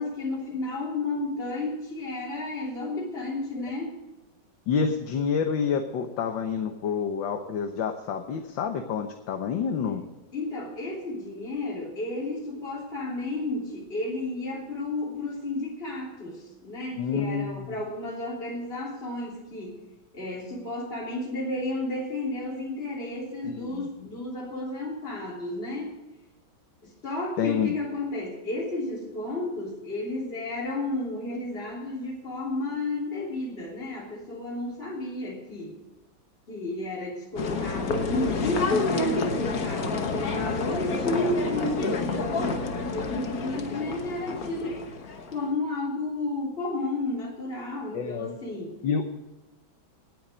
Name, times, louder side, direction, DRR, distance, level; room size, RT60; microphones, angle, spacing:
voice 1, 0.0-4.0 9.9-10.1 10.3-19.8 20.1-25.9 26.8-35.8 36.5-44.8 45.3-48.8, left 2 dB, 30° left, -3 dB, 3.5 m, -32 dB
voice 2, 4.7-10.0 16.9-17.8 23.4-23.9 27.4-27.7 47.9-48.3 48.8-49.0, left 6 dB, 70° left, 5 dB, 1.8 m, -28 dB
sound 1, 37.4-45.5, left 3 dB, 50° left, 1.6 m, -29 dB
18.0 x 9.0 x 5.1 m, 1.1 s
omnidirectional pair, 2.1 m